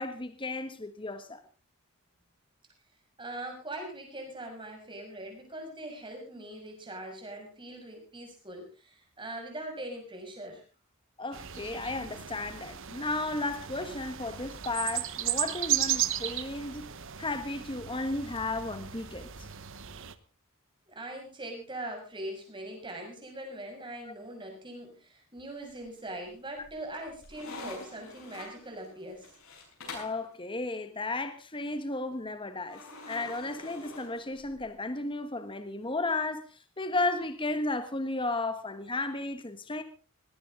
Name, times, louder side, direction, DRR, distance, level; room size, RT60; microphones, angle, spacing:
voice 1, 0.0-1.4 11.2-16.9 17.2-19.3 24.0-24.2 29.9-32.8 33.1-39.8, left 2 dB, 25° left, 1.4 m, -34 dB
voice 2, 3.2-10.6 20.9-29.3, right 1 dB, 20° right, 6.5 m, -41 dB
sound 1, 11.3-20.1, right 12 dB, 60° right, 1.1 m, -35 dB
sound 2, 25.6-26.2 26.6-30.2 32.7-34.7, left 2 dB, 65° left, 6.6 m, -46 dB
19.0 x 16.5 x 3.8 m
head